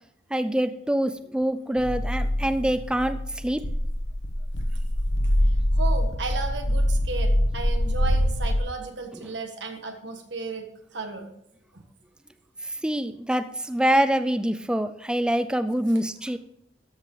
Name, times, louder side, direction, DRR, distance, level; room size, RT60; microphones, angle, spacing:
voice 1, 0.3-3.6 12.6-16.4, right 1 dB, 5° right, 10 dB, 0.3 m, -25 dB
sound 1, 1.8-8.6, equal, 80° left, 1.2 m, -24 dB
voice 2, 5.7-11.3 11.7-11.8, right 4 dB, 60° right, 4 dB, 1.5 m, -34 dB
13.5 x 6.5 x 3.7 m, 0.78 s
head